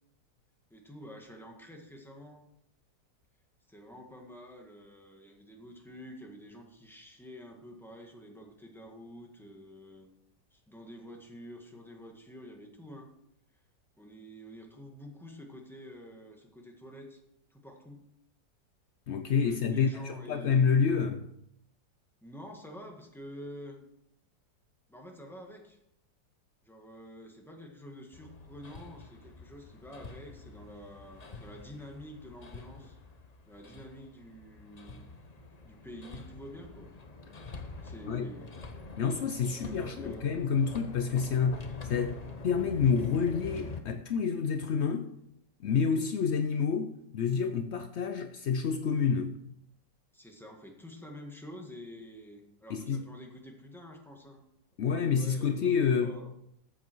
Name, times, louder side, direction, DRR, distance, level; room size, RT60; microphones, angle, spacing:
voice 1, 0.7-2.4 3.7-10.1 10.5-13.1 14.0-17.2 17.5-18.0 19.4-20.6 22.2-23.8 24.9-25.8 26.6-33.0 33.4-35.0 35.6-36.9 37.8-38.5 39.5-40.4 50.1-54.4 55.0-56.3, equal, ahead, 1.7 m, -48 dB
voice 2, 19.1-21.3 38.1-38.3 39.0-45.1 45.6-49.4 52.7-53.0 54.8-56.1, left 6 dB, 80° left, 0.6 m, -28 dB
Hammer, 28.1-43.8, left 3 dB, 35° left, 0.7 m, -46 dB
13.5 x 8.0 x 4.6 m
omnidirectional pair, 2.0 m